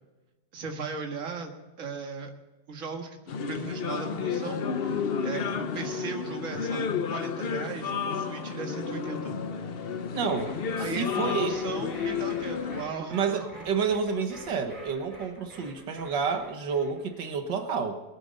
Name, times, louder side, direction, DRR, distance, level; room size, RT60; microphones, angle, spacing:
voice 1, 0.5-1.5 1.8-2.3 2.7-3.2 3.5-9.3 10.8-13.4, right 4 dB, 50° right, 3 dB, 2.0 m, -37 dB
sound 1, 3.3-12.8, left 6 dB, 50° left, 0.7 m, -31 dB
voice 2, 10.1-10.6 11.0-11.6 13.1-18.0, right 5 dB, 90° right, 6 dB, 2.0 m, -29 dB
sound 2, 10.2-17.3, right 1 dB, 20° left, 5.5 m, -47 dB
20.5 x 8.8 x 5.3 m, 1.2 s
omnidirectional pair, 1.9 m